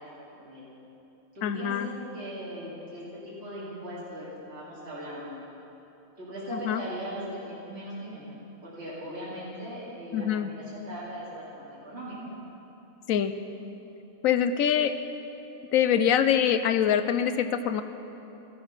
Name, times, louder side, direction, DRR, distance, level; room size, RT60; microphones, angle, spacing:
voice 1, 0.1-0.7 1.3-5.4 6.2-12.2, equal, 50° right, -9 dB, 2.7 m, -39 dB
voice 2, 1.4-1.9 6.6-6.8 10.1-10.5 13.1-13.3 14.2-14.9 15.7-17.8, left 9 dB, 90° left, 11 dB, 1.1 m, -24 dB
13.5 x 11.5 x 5.9 m, 3.0 s
omnidirectional pair, 1.4 m